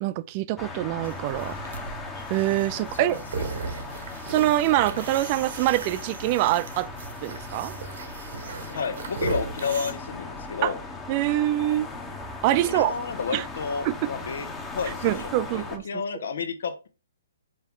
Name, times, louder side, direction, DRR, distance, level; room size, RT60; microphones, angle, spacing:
voice 1, 0.0-1.6 2.3-3.2 4.3-6.9 7.2-7.7 10.6-10.7 11.1-11.9 12.4-12.9 13.3-13.4 13.8-14.1 15.0-15.8, right 15 dB, 35° right, 0.4 m, -24 dB
sound 1, 0.6-15.8, left 3 dB, 10° left, 1.0 m, -38 dB
sound 2, 1.0-9.9, right 5 dB, 65° right, 1.3 m, -37 dB
voice 2, 2.9-3.5 8.7-10.8 12.7-14.5 14.7-16.9, left 6 dB, 70° left, 1.0 m, -31 dB
5.5 x 4.6 x 3.7 m
hypercardioid pair, 145°, 0 cm